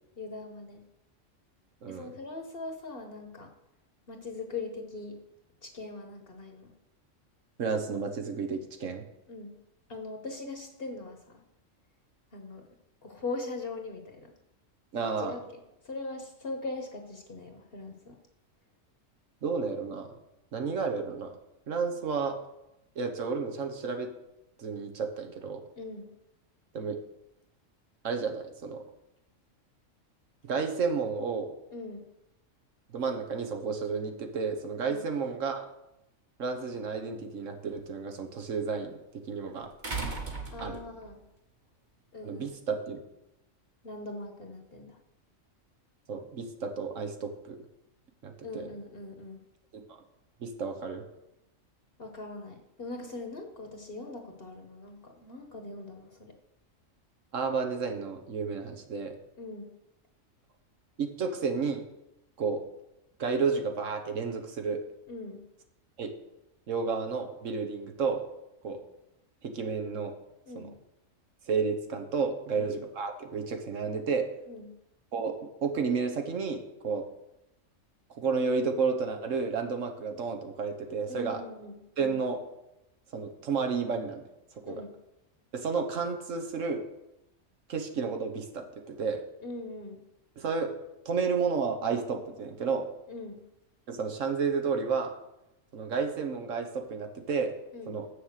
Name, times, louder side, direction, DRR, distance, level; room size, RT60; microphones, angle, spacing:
voice 1, 0.2-0.8 1.9-3.5 4.1-5.2 5.6-6.7 9.3-9.6 9.9-11.4 12.3-12.6 13.0-14.3 15.2-15.4 15.9-18.1 25.8-26.1 31.7-32.1 34.8-35.0 40.5-41.2 42.1-42.5 43.8-44.9 48.4-49.4 52.0-56.3 59.4-59.7 65.1-65.4 70.5-70.7 72.6-72.7 74.5-74.7 81.1-81.8 84.6-84.9 89.4-90.0 93.1-93.4 97.7-97.9, left 3 dB, 50° left, 4 dB, 1.2 m, -40 dB
voice 2, 7.6-9.0 14.9-15.4 19.4-20.1 20.5-21.3 21.7-22.4 22.9-24.1 24.6-25.6 26.7-27.0 28.0-28.8 30.4-31.5 32.9-35.7 36.4-39.0 39.3-39.7 40.6-40.8 42.2-43.0 46.1-47.6 48.2-48.7 49.7-49.8 50.4-51.0 57.3-59.1 61.0-61.9 62.4-62.6 63.2-64.8 66.0-66.1 66.7-68.2 68.6-68.8 69.4-70.1 70.5-70.7 71.5-74.3 75.1-75.4 75.6-77.1 78.1-81.4 82.0-82.4 83.1-84.2 84.7-84.8 85.5-86.8 87.7-89.2 90.4-90.7 91.0-92.9 93.9-95.1 95.7-97.5 97.9-98.1, right 5 dB, 75° right, 5 dB, 1.4 m, -31 dB
sound 1, 36.6-36.7 39.8-41.1 42.5-42.6, right 3 dB, 35° right, 1.6 m, -36 dB
7.4 x 6.6 x 6.5 m, 0.88 s
omnidirectional pair, 1.4 m